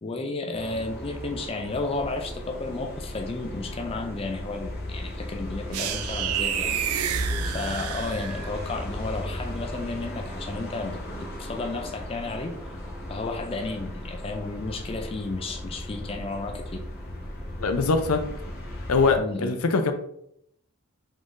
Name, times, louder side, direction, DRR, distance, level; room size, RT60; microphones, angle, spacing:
voice 1, 0.0-6.8 7.4-12.6 13.1-16.8 19.2-19.6, left 3 dB, 25° left, 4 dB, 0.4 m, -33 dB
sound 1, 0.5-19.2, left 1 dB, 45° left, 1.0 m, -36 dB
sound 2, 5.7-8.6, right 8 dB, 90° right, 0.4 m, -29 dB
voice 2, 17.6-18.2 18.9-19.9, left 4 dB, 85° left, 7 dB, 0.6 m, -22 dB
4.9 x 3.8 x 2.6 m, 0.73 s
head